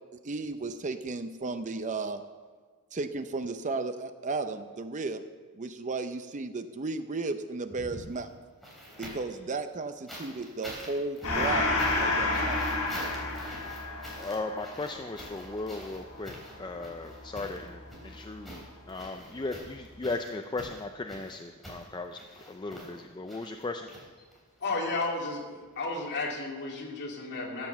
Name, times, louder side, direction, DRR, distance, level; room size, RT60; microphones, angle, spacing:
voice 1, 0.2-2.2 2.9-5.2 5.6-8.3 9.0-12.7, right 3 dB, 35° right, 10 dB, 0.6 m, -34 dB
sound 1, 7.7-9.4 10.1-24.6 25.7-25.8, equal, ahead, 3.5 m, -46 dB
Gong, 11.2-18.2, left 2 dB, 70° left, 4.7 m, -31 dB
voice 2, 14.2-23.9, left 3 dB, 20° left, 5 dB, 0.5 m, -37 dB
voice 3, 24.6-25.4 25.7-27.7, left 3 dB, 50° left, -1 dB, 2.6 m, -32 dB
14.0 x 7.6 x 7.2 m, 1.5 s
head